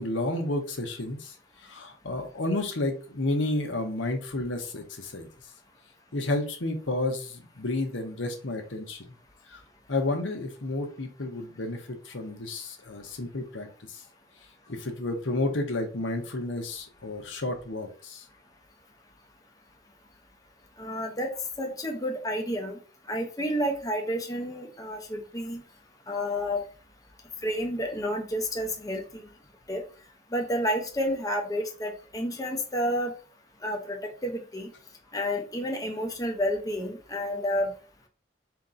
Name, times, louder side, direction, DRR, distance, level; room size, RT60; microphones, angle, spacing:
voice 1, 0.0-1.3 1.6-5.3 6.1-9.1 9.5-9.6 9.9-14.0 14.7-18.2, left 2 dB, 80° left, 4 dB, 1.0 m, -31 dB
voice 2, 20.8-21.3 21.6-22.8 23.1-25.6 26.1-26.6 27.4-29.2 29.7-29.8 30.3-33.1 33.6-34.7 35.1-37.7, equal, 20° left, 2 dB, 0.8 m, -30 dB
4.4 x 2.9 x 3.9 m, 0.38 s
head